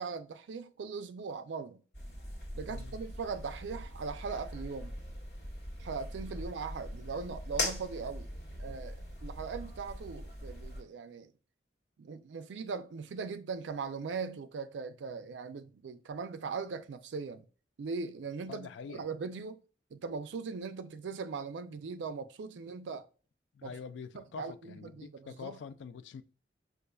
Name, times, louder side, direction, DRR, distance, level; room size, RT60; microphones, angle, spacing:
voice 1, 0.0-1.8 2.5-5.0 5.8-8.3 8.6-11.3 12.0-17.5 17.8-19.6 19.9-23.1 23.6-23.7 24.1-25.6, right 5 dB, 90° right, 0.4 m, -40 dB
sound 1, 1.9-10.8, left 1 dB, 70° left, 1.4 m, -41 dB
voice 2, 2.6-3.0 18.5-19.0 23.5-26.2, left 6 dB, 85° left, 0.3 m, -45 dB
5.1 x 2.4 x 2.2 m
head